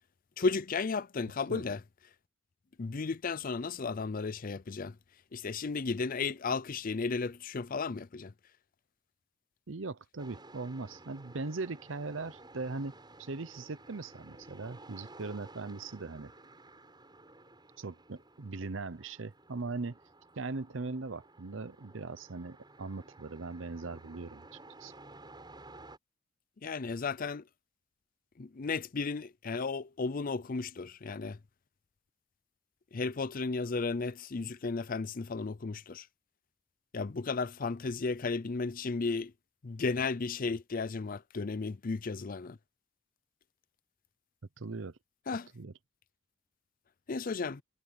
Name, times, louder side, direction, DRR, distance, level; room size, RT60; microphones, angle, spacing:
voice 1, 0.4-1.8 2.8-4.9 5.3-8.3 26.6-27.4 28.4-31.4 32.9-36.1 36.9-39.3 39.6-42.6 45.3-45.5 47.1-47.6, left 4 dB, 40° left, 0.5 m, -34 dB
voice 2, 9.7-12.9 13.2-16.3 17.8-20.0 20.4-24.5 24.8-24.9 44.6-45.0 45.5-45.7, right 3 dB, 65° right, 0.8 m, -39 dB
sound 1, 10.2-26.0, right 2 dB, 20° right, 8.0 m, -54 dB
head